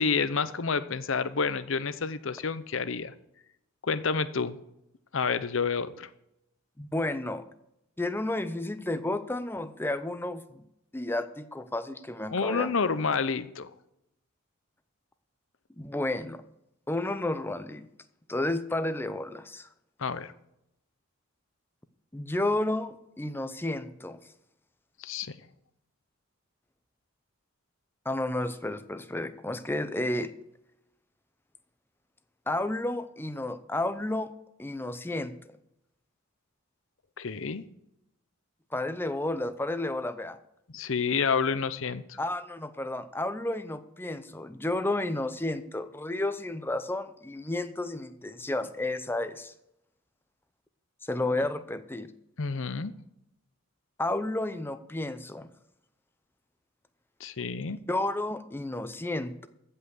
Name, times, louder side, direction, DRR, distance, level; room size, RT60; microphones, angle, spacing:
voice 1, 0.0-3.1 3.8-4.6 5.1-6.1 12.3-13.7 20.0-20.3 25.0-25.3 37.2-37.6 40.7-42.2 52.4-52.9 57.2-57.8, left 5 dB, 65° left, 14 dB, 0.7 m, -29 dB
voice 2, 6.8-7.4 8.0-10.6 10.9-12.7 15.8-16.4 16.9-17.9 18.3-19.7 22.1-24.2 28.0-30.3 32.5-34.3 34.6-35.6 38.7-40.4 42.2-49.5 51.0-52.1 54.0-55.5 57.7-59.5, left 1 dB, 10° left, 11 dB, 0.6 m, -32 dB
14.5 x 5.6 x 7.9 m, 0.83 s
head